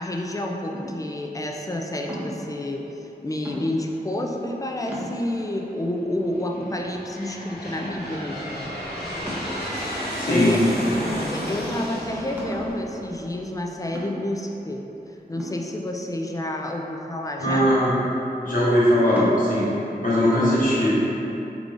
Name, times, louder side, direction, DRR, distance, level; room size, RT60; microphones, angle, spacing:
voice 1, 0.0-2.8 3.2-8.8 10.0-10.7 11.1-14.8 15.3-17.7, left 1 dB, 20° left, 1 dB, 0.3 m, -29 dB
sound 1, 0.7-1.2 2.1-2.5 3.4-4.0 4.5-4.6 4.9-5.5 6.1-6.2 6.6-7.3 7.8-8.2 9.3-10.0 10.7-11.3 11.7-11.8 12.4-12.8 13.9-14.4 15.4-16.3 17.5-18.0 19.2-19.4, equal, 10° right, 0.7 m, -36 dB
Aircraft, 4.8-5.3 6.1-13.6, equal, 75° left, 0.8 m, -33 dB
voice 2, 10.1-10.6 17.4-18.0 18.4-19.8 20.0-20.9, equal, 55° left, -9 dB, 1.1 m, -20 dB
3.7 x 3.2 x 2.5 m, 2.9 s
wide cardioid pair, 45°, 17 cm